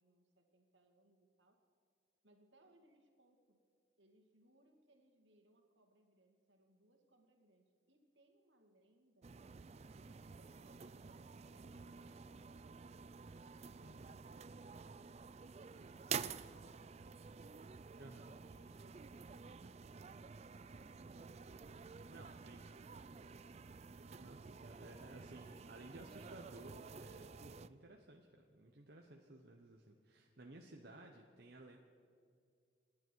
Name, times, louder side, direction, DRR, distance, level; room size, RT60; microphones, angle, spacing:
voice 1, 0.0-1.6 2.2-3.6 4.0-9.4 9.9-12.4 13.0-14.5 14.9-16.7 18.4-20.2 20.5-23.7, right 1 dB, 70° right, 3 dB, 2.2 m, -71 dB
sound 1, 9.2-27.7, right 6 dB, 35° right, 0.3 m, -50 dB
voice 2, 13.8-14.2 18.0-18.3 22.1-23.2 23.9-31.8, right 2 dB, 55° right, 1 dB, 1.1 m, -57 dB
27.0 x 11.0 x 4.7 m, 2.3 s
head